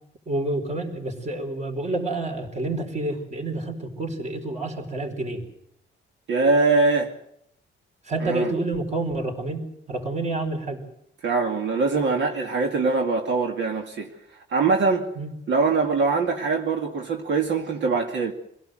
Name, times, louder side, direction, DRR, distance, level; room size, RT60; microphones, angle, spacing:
voice 1, 0.3-5.4 8.1-10.8 15.2-15.3, right 2 dB, 35° right, 4.6 m, -28 dB
voice 2, 6.3-7.1 8.2-8.5 11.2-14.1 14.5-15.1 15.5-18.3, right 4 dB, 65° right, 2.5 m, -22 dB
25.5 x 17.0 x 7.8 m
cardioid pair, 130°, 20 cm